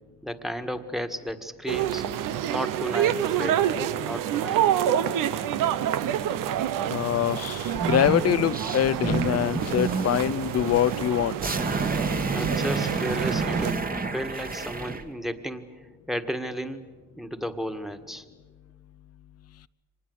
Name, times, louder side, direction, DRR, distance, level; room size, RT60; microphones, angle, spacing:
voice 1, 0.2-2.0 2.5-3.6 4.0-4.7 12.3-13.8 14.1-16.9 17.2-18.2, equal, ahead, 8 dB, 1.7 m, -33 dB
sound 1, 1.7-13.7, right 10 dB, 80° right, 1.0 m, -28 dB
voice 2, 6.9-11.4, left 11 dB, 50° left, 20 dB, 0.6 m, -24 dB
sound 2, 7.6-15.0, right 4 dB, 25° right, 1.7 m, -30 dB
25.0 x 20.0 x 8.0 m, 1.4 s
cardioid pair, 85°, 32 cm